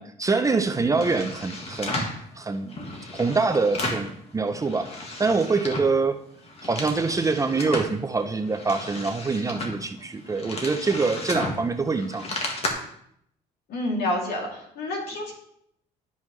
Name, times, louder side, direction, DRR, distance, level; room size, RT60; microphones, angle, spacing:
voice 1, 0.0-2.1 2.4-2.8 3.1-6.2 6.6-12.3, right 4 dB, 20° right, 8 dB, 0.5 m, -25 dB
sound 1, 0.8-2.2 2.7-4.1 4.5-6.0 6.3-7.9 8.4-12.7, left 2 dB, 35° left, 1.7 m, -34 dB
voice 2, 13.7-15.3, left 1 dB, 70° left, -1 dB, 2.8 m, -28 dB
12.0 x 5.5 x 3.2 m, 0.71 s
cardioid pair, 110°, 17 cm